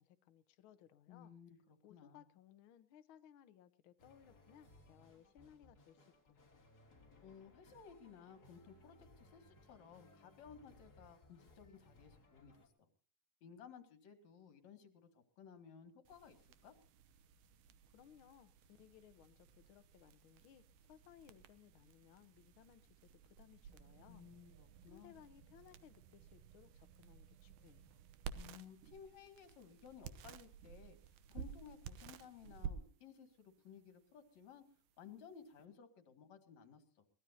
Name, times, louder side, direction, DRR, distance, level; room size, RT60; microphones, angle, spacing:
voice 1, 0.0-1.3 1.8-6.4 17.9-24.3 24.9-28.0, left 10 dB, 85° left, 10 dB, 1.1 m, -63 dB
voice 2, 1.1-2.2 7.2-12.5 12.8-12.9 13.4-16.8 24.1-25.1 28.3-34.6 35.0-37.1, left 7 dB, 60° left, 7 dB, 3.3 m, -58 dB
sound 1, 4.0-12.7, left 2 dB, 30° left, 3.0 m, -65 dB
sound 2, 16.1-35.7, right 7 dB, 75° right, 2.4 m, -54 dB
22.5 x 19.0 x 2.8 m, 0.39 s
omnidirectional pair, 3.7 m